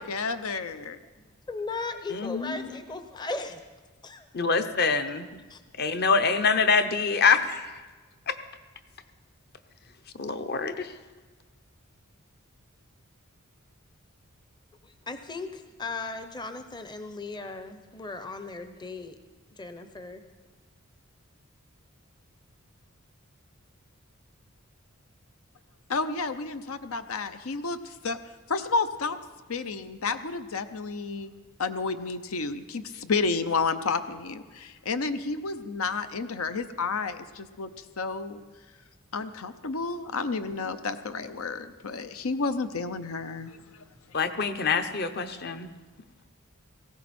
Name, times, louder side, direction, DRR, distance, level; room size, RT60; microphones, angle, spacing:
voice 1, 0.1-1.0 25.9-27.8 28.0-28.2 28.5-29.2 29.5-31.3 31.6-37.7 38.0-38.4 39.1-43.6, left 4 dB, 80° left, 10 dB, 0.7 m, -31 dB
voice 2, 1.5-3.6 4.0-4.3 5.5-5.6 14.8-19.2 19.6-20.2, left 3 dB, 20° left, 9 dB, 0.7 m, -37 dB
voice 3, 2.1-2.7 4.3-5.3 5.8-7.7 8.3-8.4 10.2-10.9 44.1-45.7, left 5 dB, 50° left, 9 dB, 0.9 m, -25 dB
18.5 x 16.5 x 4.3 m, 1.3 s
head